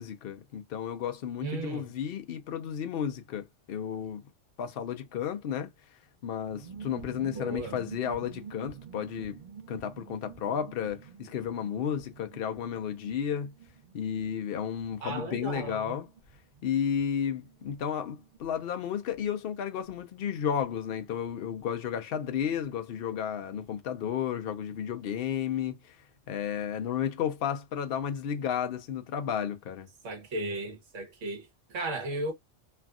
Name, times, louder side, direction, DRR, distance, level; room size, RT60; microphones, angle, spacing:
voice 1, 0.0-4.2 4.6-5.7 6.2-9.4 9.7-13.5 13.9-16.1 16.6-26.0 26.3-29.9, left 8 dB, 60° left, 0.7 m, -33 dB
voice 2, 1.4-1.9 7.3-7.8 15.0-16.0 30.0-32.3, right 2 dB, 80° right, 1.5 m, -35 dB
sound 1, 6.4-22.7 23.0-23.1 23.3-23.7, right 7 dB, 50° right, 0.6 m, -49 dB
3.3 x 2.5 x 2.3 m
omnidirectional pair, 1.3 m